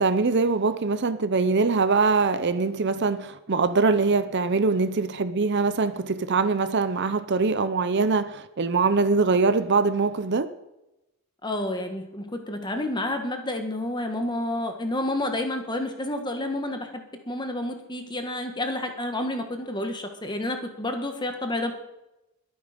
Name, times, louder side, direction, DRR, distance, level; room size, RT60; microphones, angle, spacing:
voice 1, 0.0-10.5, right 4 dB, 50° right, 13 dB, 0.7 m, -23 dB
voice 2, 11.4-21.7, left 1 dB, 20° left, 5 dB, 1.5 m, -30 dB
21.5 x 8.8 x 5.1 m, 0.95 s
head